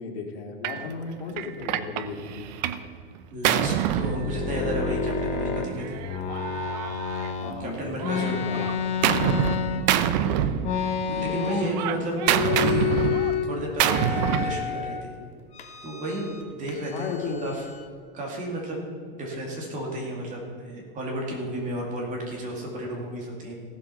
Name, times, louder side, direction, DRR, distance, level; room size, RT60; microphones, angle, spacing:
voice 1, 0.0-2.5 7.4-8.7 10.1-10.6 16.9-17.5, left 4 dB, 70° left, 0 dB, 2.8 m, -35 dB
Gunshot gunfire, 0.6-0.8 1.4-2.9 3.2-4.9 5.8-7.6 8.0-9.6 9.9-11.1 11.4-14.6, right 10 dB, 45° right, 0.6 m, -26 dB
voice 2, 3.3-6.0 7.6-8.7 9.3-9.9 11.1-12.9 13.5-15.2 15.8-17.7 18.1-18.9 19.2-23.5, right 1 dB, 25° right, -1 dB, 2.4 m, -32 dB
sound 1, 4.0-7.5 8.0-10.1 10.6-11.9 12.1-13.5 13.8-15.0 15.5-16.4 16.7-17.9, left 7 dB, 20° left, 0.8 m, -30 dB
16.0 x 7.5 x 5.6 m, 2.1 s
supercardioid pair, 165°, 32 cm